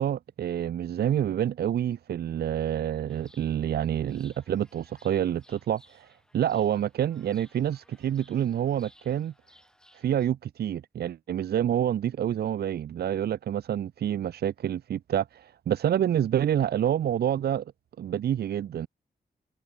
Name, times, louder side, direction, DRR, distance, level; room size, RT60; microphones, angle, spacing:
voice 1, 0.0-6.1 6.3-9.3 10.0-17.6 18.0-18.9, right 10 dB, 80° right, 0.5 m, -27 dB
Chirp tweet, 3.1-10.3, equal, 5° left, 7.3 m, -60 dB
wide cardioid pair, 125°, 16 cm